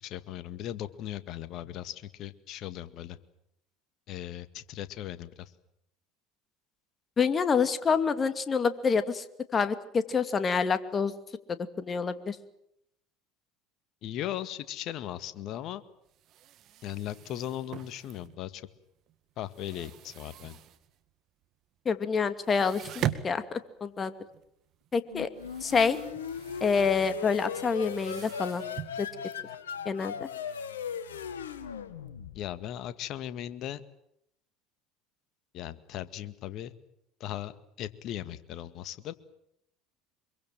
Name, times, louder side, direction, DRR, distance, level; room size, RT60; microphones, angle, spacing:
voice 1, 0.0-3.2 4.1-5.5 14.0-15.8 16.8-18.6 19.4-20.6 32.3-33.8 35.5-36.7 37.2-39.1, left 12 dB, 55° left, 13 dB, 1.9 m, -38 dB
voice 2, 7.2-9.2 9.5-11.1 11.8-12.4 21.9-24.1 24.9-25.3 25.6-26.0 26.6-28.6 29.0-29.1 29.9-30.3, left 5 dB, 30° left, 11 dB, 2.5 m, -27 dB
sound 1, 15.4-15.5 15.7-15.8 16.1-18.7 19.0-21.1 21.4-21.5 21.9-22.0 22.3-30.6, right 11 dB, 50° right, 2.0 m, -41 dB
sound 2, 25.1-32.7, left 7 dB, 80° left, 1.8 m, -38 dB
25.5 x 23.0 x 7.7 m, 0.76 s
hypercardioid pair, 70°, 0 cm